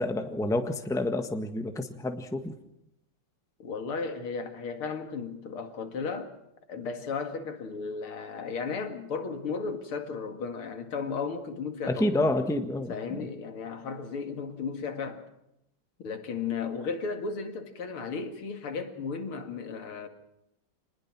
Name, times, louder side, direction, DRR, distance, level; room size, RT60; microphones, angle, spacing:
voice 1, 0.0-2.5 11.9-13.3, left 1 dB, ahead, 1.3 m, -29 dB
voice 2, 3.6-6.3 6.7-12.1 12.9-15.2 16.0-20.1, left 5 dB, 75° left, 2.9 m, -35 dB
27.0 x 20.0 x 6.1 m
omnidirectional pair, 2.4 m